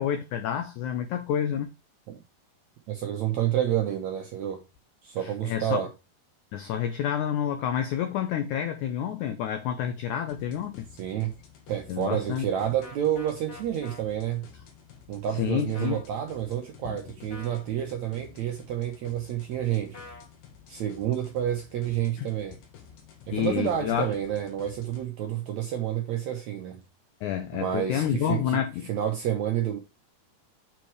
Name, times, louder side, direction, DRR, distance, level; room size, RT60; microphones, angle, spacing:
voice 1, 0.0-1.7 5.2-5.9 6.5-10.9 11.9-12.4 15.3-16.0 16.9-17.0 22.2-22.3 23.3-24.1 27.2-28.9, left 9 dB, 85° left, 1.7 m, -29 dB
voice 2, 2.9-4.6 5.0-5.9 11.0-11.3 11.7-14.5 15.1-20.0 20.7-22.6 23.3-26.8 27.5-29.8, right 10 dB, 75° right, 1.6 m, -29 dB
sound 1, 10.3-25.0, left 7 dB, 70° left, 3.3 m, -52 dB
sound 2, 12.8-14.0 15.7-16.1 17.3-17.6 19.9-20.3, left 2 dB, 50° left, 2.1 m, -45 dB
7.4 x 4.5 x 4.7 m
omnidirectional pair, 4.4 m